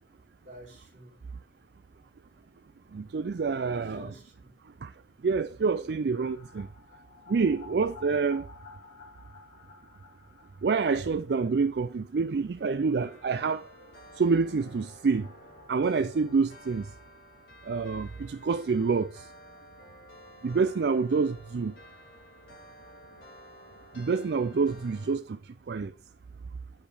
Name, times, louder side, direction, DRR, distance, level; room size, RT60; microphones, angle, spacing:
voice 1, 0.4-1.2 2.3-2.7 3.6-4.5 19.5-19.6, equal, 40° right, 3.0 m, -50 dB
voice 2, 2.9-4.1 4.8-4.9 5.2-6.7 7.3-8.4 10.6-13.7 14.2-15.3 15.7-16.9 17.7-19.1 20.4-21.7 24.0-25.4 25.7-25.9, right 4 dB, 70° right, 0.4 m, -27 dB
sound 1, 6.1-17.7 18.0-18.1 18.4-18.5 21.5-21.6 21.8-21.9 22.2-23.9 24.2-24.3, left 4 dB, 40° left, 3.2 m, -54 dB
sound 2, 13.0-25.2, equal, 60° left, 5.3 m, -52 dB
9.4 x 5.1 x 4.9 m
head